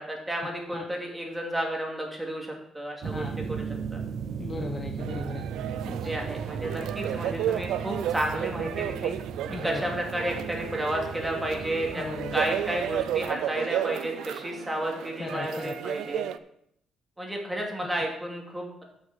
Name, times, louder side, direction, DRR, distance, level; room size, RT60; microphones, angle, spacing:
voice 1, 0.0-4.0 6.0-9.2 9.6-12.0 12.3-16.2 17.2-18.8, right 1 dB, 10° right, 0 dB, 2.6 m, -32 dB
sound 1, 3.0-13.3, right 6 dB, 60° right, 0.9 m, -37 dB
voice 2, 4.4-5.5 5.9-6.1 9.4-9.8 12.0-12.4 15.2-15.7, left 3 dB, 25° left, 2 dB, 1.0 m, -36 dB
sound 2, 5.0-16.4, right 11 dB, 85° right, 0.4 m, -33 dB
8.2 x 6.4 x 6.2 m, 0.74 s
cardioid pair, 105°, 0 cm